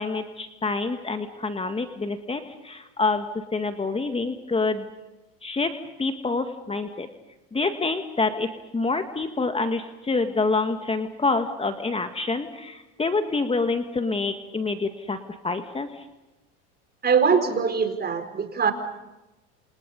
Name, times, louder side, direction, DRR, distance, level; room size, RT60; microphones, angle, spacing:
voice 1, 0.0-3.3 3.5-4.9 5.4-7.1 7.5-15.2 15.4-16.0, left 3 dB, 15° left, 8 dB, 2.0 m, -27 dB
voice 2, 17.0-18.7, right 6 dB, 25° right, 9 dB, 4.3 m, -22 dB
28.5 x 28.0 x 5.5 m, 1.0 s
supercardioid pair, 105°, 35 cm